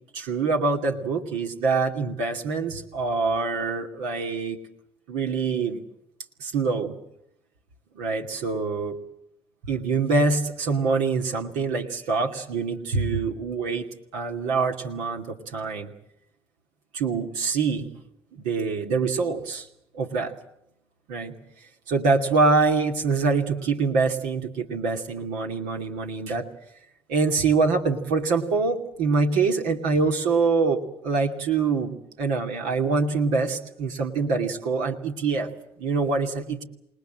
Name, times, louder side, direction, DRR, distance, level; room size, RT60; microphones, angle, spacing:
voice 1, 0.1-4.6 5.1-5.8 6.4-6.9 7.9-8.9 9.7-13.8 14.1-15.9 16.9-17.9 18.3-19.7 19.9-20.3 21.1-21.3 21.9-26.5 27.1-35.5 35.8-36.6, right 4 dB, 70° right, 3 dB, 2.6 m, -25 dB
27.5 x 20.0 x 7.7 m, 0.79 s
hypercardioid pair, 60°, 14 cm